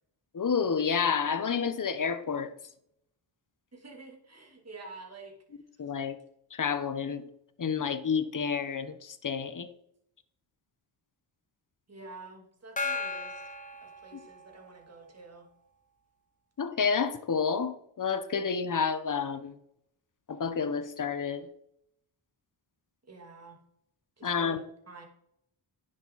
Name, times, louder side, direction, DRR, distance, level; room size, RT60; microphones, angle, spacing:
voice 1, 0.3-2.5 5.8-6.2 6.5-7.2 7.6-9.7 16.6-19.5 20.3-21.5 24.2-24.6, left 6 dB, 40° left, 1.1 m, -29 dB
voice 2, 3.7-5.4 11.9-15.5 23.0-23.6 24.2-25.0, right 3 dB, 30° right, 2.8 m, -49 dB
Gong, 12.8-14.8, left 4 dB, 15° left, 1.3 m, -36 dB
10.5 x 7.5 x 4.1 m
wide cardioid pair, 90°, 48 cm